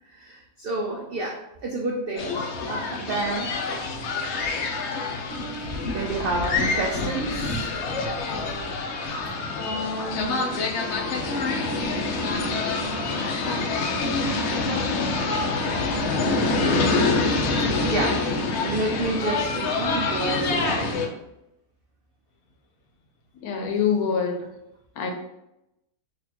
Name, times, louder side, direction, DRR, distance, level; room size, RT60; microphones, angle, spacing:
voice 1, 0.1-2.3 2.7-3.5 5.9-7.7 9.5-9.6 17.9-21.1, right 2 dB, 90° right, -1 dB, 0.5 m, -29 dB
sound 1, 2.2-21.1, left 3 dB, 65° left, 0.7 m, -26 dB
Wind instrument woodwind instrument, 5.2-12.8, equal, 50° right, 1.6 m, -42 dB
voice 2, 9.5-10.4 13.4-15.4 23.3-24.5 25.0-25.1, left 5 dB, 80° left, 3 dB, 1.1 m, -29 dB
4.2 x 2.9 x 2.8 m, 0.87 s
omnidirectional pair, 1.6 m